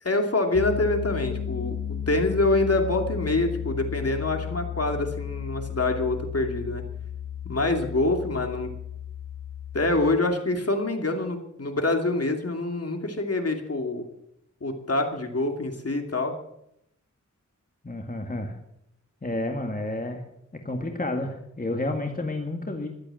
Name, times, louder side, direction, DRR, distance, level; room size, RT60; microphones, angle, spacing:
voice 1, 0.0-1.8 2.1-6.8 7.4-8.7 9.7-14.1 14.6-16.3, left 2 dB, 50° left, 4 dB, 2.7 m, -26 dB
Piano, 0.5-10.2, left 8 dB, 70° left, 1.8 m, -34 dB
voice 2, 17.8-18.6 19.2-20.2 20.5-22.9, left 2 dB, 30° left, 3 dB, 1.9 m, -30 dB
15.0 x 12.0 x 7.7 m, 0.77 s
wide cardioid pair, 70°, 31 cm